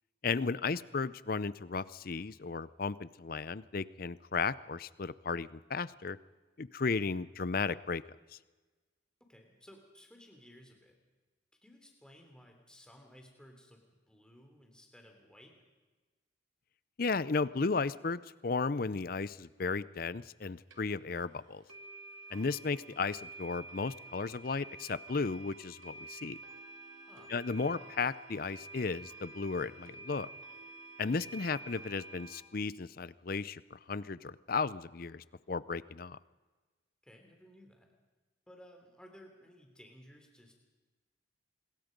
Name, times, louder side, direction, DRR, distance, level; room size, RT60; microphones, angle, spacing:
voice 1, 0.2-6.2 6.6-8.0 8.3-8.4 17.0-21.6 22.3-26.4 27.3-30.3 31.0-36.2, left 4 dB, 50° left, 18 dB, 0.6 m, -35 dB
voice 2, 9.2-10.9 11.6-15.5 27.1-27.4 37.0-37.9 38.5-40.5, equal, 5° left, 2 dB, 3.2 m, -57 dB
sound 1, 20.4-20.5 20.7-20.8 21.2-21.3 21.7-32.4, right 2 dB, 90° right, 2.9 m, -50 dB
26.0 x 21.5 x 5.3 m, 1.3 s
head